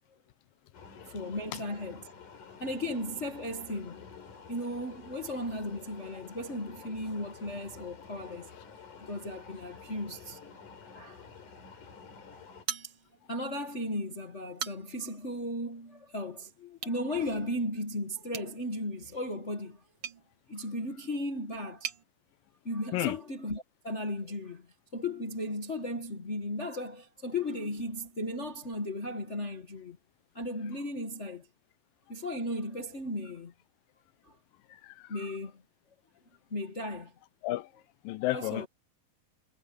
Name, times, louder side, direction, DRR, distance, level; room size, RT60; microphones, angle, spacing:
sound 1, 0.7-12.6, left 5 dB, 65° left, 5.3 m, -50 dB
voice 1, 1.1-2.0 2.6-4.1 4.5-8.5 9.0-10.4 10.9-11.2 12.3-12.4 12.8-12.9 13.3-19.8 20.5-21.9 22.6-24.7 24.9-30.0 30.3-31.5 32.1-33.5 34.2-34.4 35.1-35.5 36.5-37.1 38.3-38.7, left 1 dB, 40° left, 1.0 m, -36 dB
sound 2, 12.7-13.4 13.8-13.9 14.4-15.1 16.7-17.0 18.3-22.0, right 8 dB, 50° right, 2.3 m, -42 dB
voice 2, 34.7-35.3 37.4-37.7 38.0-38.7, left 17 dB, 85° left, 2.5 m, -33 dB
omnidirectional pair, 3.9 m